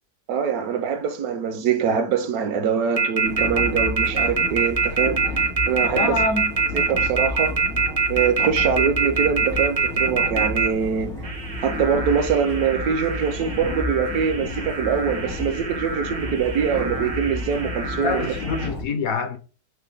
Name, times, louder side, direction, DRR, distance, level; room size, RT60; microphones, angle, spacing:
voice 1, 0.3-6.2 6.7-7.6 8.1-11.1 11.6-18.3, right 7 dB, 70° right, 1.1 m, -24 dB
sound 1, 3.0-10.7 11.2-18.7, right 5 dB, 45° right, 0.4 m, -25 dB
sound 2, 3.2-18.8, left 2 dB, 85° left, 2.9 m, -32 dB
voice 2, 5.9-6.5 18.0-19.4, left 4 dB, 65° left, 1.1 m, -25 dB
6.4 x 2.2 x 3.3 m
omnidirectional pair, 1.7 m